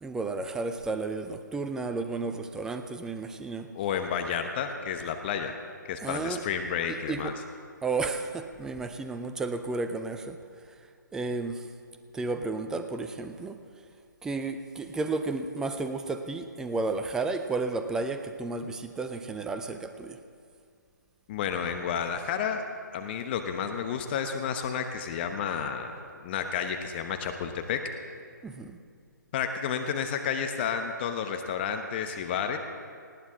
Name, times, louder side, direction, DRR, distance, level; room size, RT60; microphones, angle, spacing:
voice 1, 0.0-3.7 6.0-6.4 6.9-7.4 7.8-10.4 11.1-11.7 12.1-13.6 14.2-20.2 28.4-28.8, right 3 dB, 5° right, 8 dB, 0.5 m, -32 dB
voice 2, 3.7-5.6 5.9-7.3 21.3-22.6 22.9-25.9 26.2-27.8 29.3-32.6, left 7 dB, 30° left, 6 dB, 1.0 m, -31 dB
19.0 x 16.5 x 3.8 m, 2.2 s
figure-of-eight pair, 145°, 11 cm